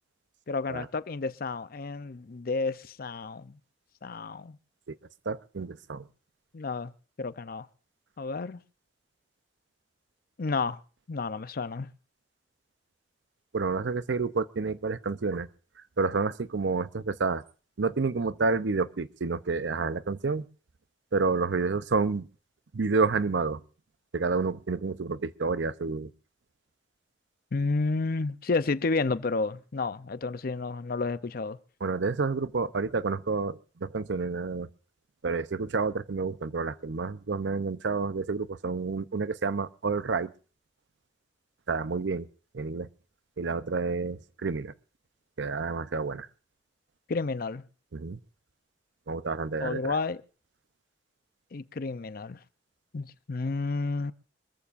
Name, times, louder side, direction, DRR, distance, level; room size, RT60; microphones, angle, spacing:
voice 1, 0.5-3.6 4.0-4.6 6.5-6.9 7.2-7.7 8.2-8.6 10.4-10.8 11.1-11.9 27.5-31.6 47.1-47.6 49.6-50.2 51.5-52.4 52.9-54.1, left 3 dB, 55° left, 0.6 m, -31 dB
voice 2, 5.3-6.1 13.5-15.5 16.0-17.4 17.8-20.5 21.1-22.3 22.7-23.6 24.1-26.1 31.8-34.7 35.2-40.3 41.7-42.3 42.5-42.9 43.4-44.7 45.4-46.3 47.9-48.2 49.1-50.0, right 4 dB, 80° right, 0.7 m, -29 dB
26.0 x 14.0 x 2.5 m
head